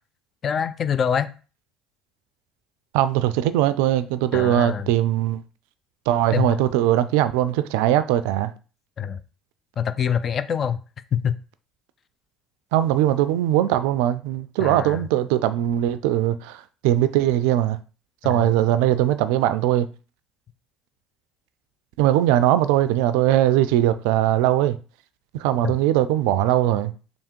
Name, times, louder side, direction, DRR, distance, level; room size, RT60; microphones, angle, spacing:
voice 1, 0.4-1.3 4.3-4.9 6.3-6.5 9.0-9.2 9.8-10.8 11.1-11.4 14.6-15.0 18.2-18.5 25.6-25.8, left 8 dB, 45° left, 0.4 m, -25 dB
voice 2, 2.9-5.4 6.1-8.5 12.7-17.8 18.2-19.9 22.0-24.8 25.3-26.9, right 12 dB, 70° right, 0.3 m, -20 dB
3.5 x 2.9 x 4.4 m
hypercardioid pair, 65°, 0 cm